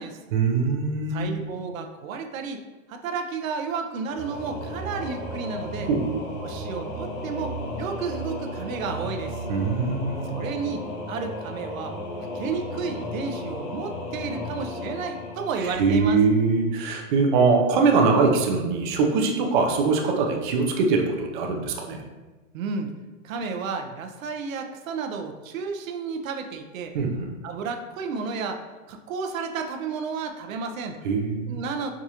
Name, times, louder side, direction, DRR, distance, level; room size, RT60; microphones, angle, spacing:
voice 1, 0.3-1.3 5.9-6.2 9.5-10.4 15.6-22.0 26.9-27.3 31.0-31.6, right 4 dB, 40° right, 2 dB, 0.4 m, -22 dB
voice 2, 1.1-2.6 2.9-5.9 6.4-9.4 10.3-10.8 11.1-11.9 12.3-16.2 22.5-22.9 23.2-26.9 27.4-31.0 31.5-31.9, right 5 dB, 85° right, 5 dB, 0.6 m, -32 dB
Singing / Musical instrument, 4.1-16.7, left 1 dB, 40° left, 0.6 m, -34 dB
4.7 x 2.4 x 2.8 m, 1.2 s
supercardioid pair, 155°, 40 cm